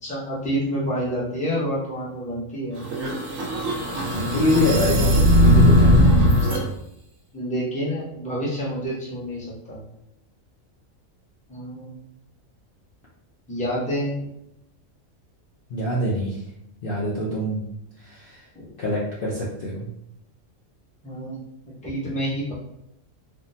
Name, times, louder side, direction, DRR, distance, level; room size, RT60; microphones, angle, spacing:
voice 1, 0.0-2.8 4.0-4.6 7.3-9.8 11.5-12.0 13.5-14.3 18.5-18.7 21.0-21.4 21.8-22.5, equal, 5° left, -6 dB, 0.6 m, -28 dB
sound 1, 2.8-6.6, equal, 70° right, 1.0 m, -18 dB
voice 2, 4.0-6.6 15.7-16.4 16.8-17.7 18.0-18.5 18.8-19.9, left 1 dB, 55° left, -6 dB, 0.7 m, -25 dB
3.5 x 2.0 x 2.6 m, 0.81 s
omnidirectional pair, 1.4 m